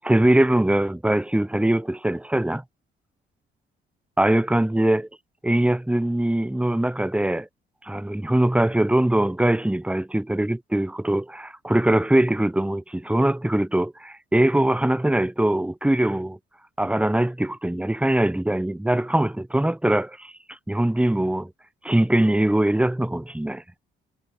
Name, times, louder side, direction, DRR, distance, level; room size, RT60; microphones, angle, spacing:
voice 1, 0.0-2.6 4.2-5.1 5.4-7.5 7.8-16.4 16.8-21.5 21.8-23.6, right 1 dB, 5° right, 1.4 m, -22 dB
cardioid pair, 90°, 20 cm